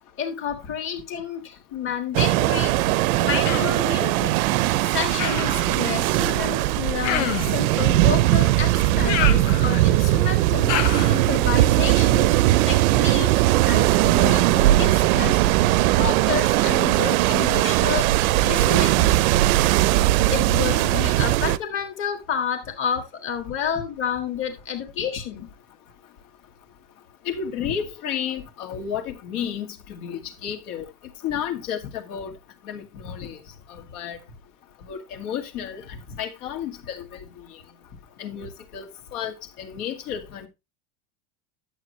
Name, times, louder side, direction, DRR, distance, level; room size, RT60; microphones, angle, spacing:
voice 1, 0.2-2.7 3.2-4.4 4.8-12.3 12.7-15.4 16.0-18.1 18.4-19.1 20.3-25.5, left 7 dB, 25° left, 1.6 m, -30 dB
sound 1, 2.1-21.6, right 16 dB, 60° right, 0.6 m, -19 dB
Human voice, 3.4-3.8 5.2-5.6 7.0-7.6 9.0-9.9 10.7-11.2, left 11 dB, 45° left, 1.1 m, -27 dB
voice 2, 27.2-30.8 31.2-32.3 32.7-33.4 33.7-34.2 34.9-35.8 36.2-37.2 38.2-40.5, left 8 dB, 65° left, 2.4 m, -32 dB
11.5 x 7.4 x 3.1 m
supercardioid pair, 180°, 48 cm